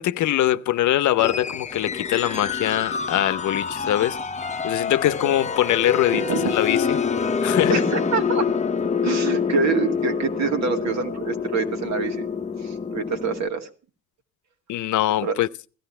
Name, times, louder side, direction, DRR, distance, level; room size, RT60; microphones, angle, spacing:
voice 1, 0.0-4.2 4.6-7.0 7.4-7.7 14.7-15.5, left 13 dB, 75° left, 0.7 m, -22 dB
sound 1, 1.2-13.5, left 6 dB, 25° left, 0.9 m, -26 dB
voice 2, 6.1-6.5 7.7-8.5 9.0-12.3 12.6-13.7 15.2-15.4, right 5 dB, 65° right, 2.3 m, -26 dB
16.5 x 13.5 x 4.3 m
cardioid pair, 90°, 30 cm